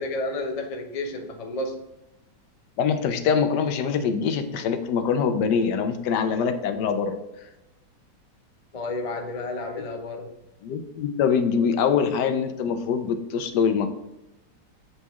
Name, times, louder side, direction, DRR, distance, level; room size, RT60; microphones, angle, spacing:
voice 1, 0.0-1.8 8.7-10.3, left 2 dB, 60° left, 4 dB, 0.3 m, -31 dB
voice 2, 2.8-7.2 10.6-13.9, left 6 dB, 75° left, 8 dB, 1.2 m, -24 dB
7.8 x 4.1 x 3.5 m, 0.94 s
omnidirectional pair, 1.9 m